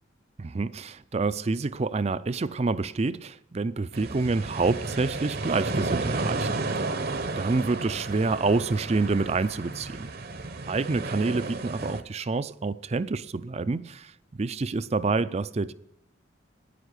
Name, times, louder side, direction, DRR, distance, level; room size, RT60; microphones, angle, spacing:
voice 1, 0.4-6.8 7.4-10.1 10.7-15.7, right 3 dB, 30° right, 0.4 m, -28 dB
sound 1, 3.9-12.0, right 3 dB, 50° right, 0.8 m, -32 dB
10.0 x 9.8 x 8.1 m
head